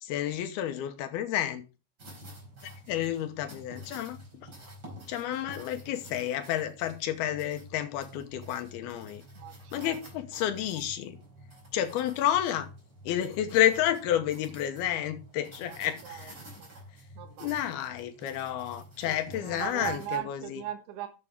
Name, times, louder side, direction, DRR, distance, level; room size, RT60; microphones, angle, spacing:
voice 1, 0.0-1.6 2.6-4.5 5.1-9.2 9.7-11.2 11.7-12.7 13.1-16.4 17.4-20.6, left 11 dB, 75° left, 2.4 m, -30 dB
sound 1, 2.0-20.2, equal, 25° right, 4.3 m, -49 dB
voice 2, 9.4-10.0 10.3-10.4 15.7-15.8 16.0-16.3 16.6-16.7 17.2-17.5 19.1-21.1, right 12 dB, 75° right, 3.7 m, -38 dB
12.0 x 8.3 x 3.5 m
omnidirectional pair, 5.5 m